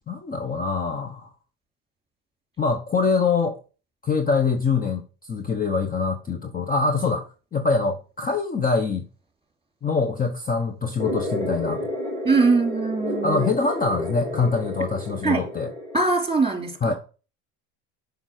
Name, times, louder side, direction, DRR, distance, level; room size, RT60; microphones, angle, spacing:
voice 1, 0.1-1.3 2.6-3.6 4.0-5.0 5.3-9.1 9.8-11.9 13.2-15.7 16.8-16.9, left 4 dB, 25° left, 0.9 m, -24 dB
sound 1, 11.0-16.0, left 1 dB, 5° left, 3.2 m, -30 dB
voice 2, 12.2-13.5 15.2-15.4 15.9-16.9, right 4 dB, 15° right, 2.8 m, -22 dB
7.1 x 5.2 x 6.5 m
supercardioid pair, 95°, 36 cm